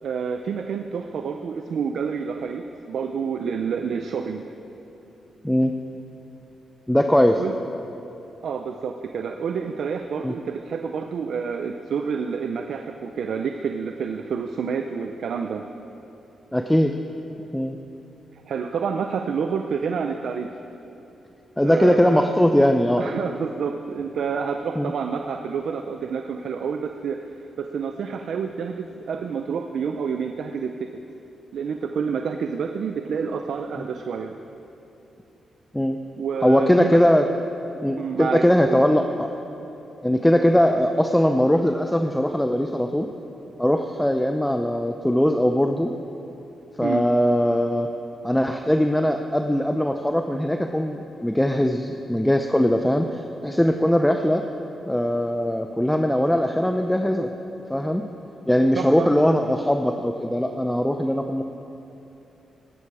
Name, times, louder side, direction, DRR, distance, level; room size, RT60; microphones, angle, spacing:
voice 1, 0.0-4.4 7.4-7.5 8.4-15.6 18.3-20.5 21.6-22.3 23.0-30.9 31.5-34.3 36.2-37.0 37.9-38.8 46.8-47.0 58.8-59.1, right 6 dB, 75° right, 5 dB, 0.6 m, -28 dB
voice 2, 6.9-7.4 10.2-10.3 16.5-16.9 17.5-17.8 21.6-23.0 24.8-24.9 33.8-33.9 35.7-36.0 36.4-37.3 37.8-39.3 40.0-43.1 43.6-45.9 46.8-47.9 48.2-54.4 54.9-57.3 57.7-58.1 58.5-61.4, equal, 5° left, 5 dB, 0.7 m, -20 dB
19.0 x 11.0 x 4.9 m, 2.9 s
cardioid pair, 75°, 0 cm